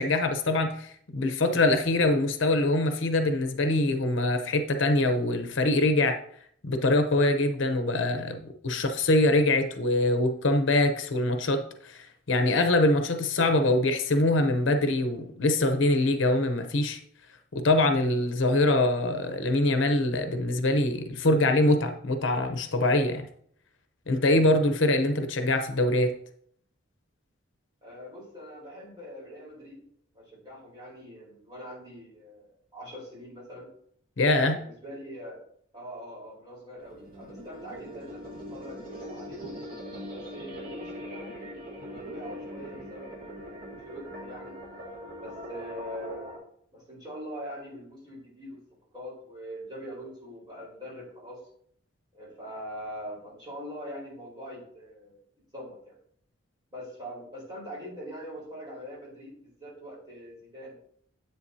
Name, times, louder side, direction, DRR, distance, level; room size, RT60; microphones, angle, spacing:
voice 1, 0.0-6.2 6.6-17.0 17.5-23.3 24.1-26.1 34.2-34.6, left 2 dB, 65° left, 7 dB, 0.8 m, -24 dB
voice 2, 27.8-29.8 30.1-33.7 34.3-35.4 35.7-39.6 40.1-44.6 45.2-46.4 46.7-48.6 48.9-51.4 52.1-56.0 56.7-60.8, equal, 20° right, -4 dB, 4.2 m, -43 dB
sound 1, 36.8-46.4, equal, 45° right, 2.1 m, -41 dB
10.5 x 8.0 x 2.8 m, 0.63 s
head